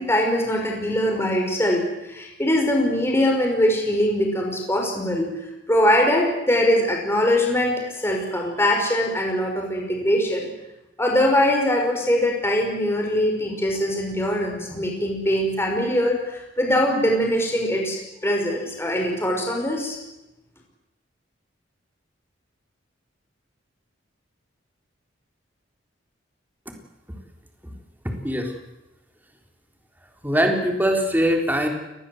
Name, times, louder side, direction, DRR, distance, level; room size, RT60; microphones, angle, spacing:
voice 1, 0.0-5.3 5.7-10.5 11.0-20.0, left 1 dB, 15° left, 1 dB, 5.3 m, -22 dB
voice 2, 28.0-28.5 30.2-31.7, equal, 10° right, 3 dB, 3.7 m, -22 dB
28.5 x 21.0 x 7.9 m, 0.96 s
head